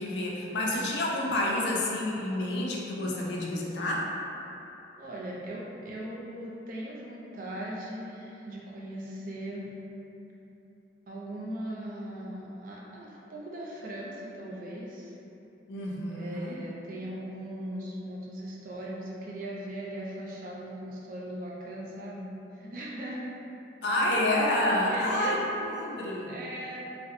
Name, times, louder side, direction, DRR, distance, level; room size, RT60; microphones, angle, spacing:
voice 1, 0.0-4.1 15.7-16.6 23.8-26.3, left 1 dB, 65° left, -2 dB, 0.4 m, -29 dB
voice 2, 5.0-9.7 11.1-15.1 16.2-23.2 24.1-24.2 24.9-25.5 26.3-26.9, right 1 dB, 45° right, -4 dB, 0.4 m, -39 dB
2.7 x 2.0 x 2.5 m, 2.9 s
head